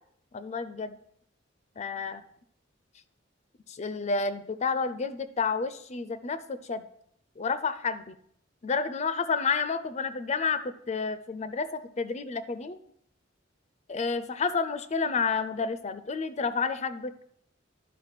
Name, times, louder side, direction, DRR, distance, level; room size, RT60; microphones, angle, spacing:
voice 1, 0.3-0.9 1.8-2.2 3.7-6.8 7.4-8.1 8.6-12.8 13.9-17.1, left 5 dB, 35° left, 13 dB, 0.4 m, -30 dB
11.5 x 5.2 x 5.9 m, 0.67 s
head